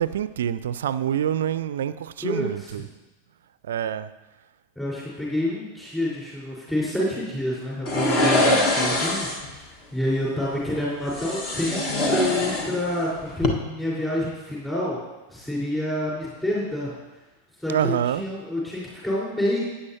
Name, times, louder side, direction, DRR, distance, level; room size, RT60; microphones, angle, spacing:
voice 1, 0.0-2.9 3.6-4.1 17.7-18.3, right 10 dB, 60° right, 0.4 m, -26 dB
voice 2, 2.2-2.8 4.8-15.0 15.3-16.9 17.6-19.6, left 1 dB, 10° left, 4.3 m, -28 dB
sound 1, 7.9-9.5 11.1-13.0 13.3-13.5, left 1 dB, 35° left, 1.5 m, -23 dB
16.0 x 9.7 x 2.8 m
figure-of-eight pair, 90°, 0 cm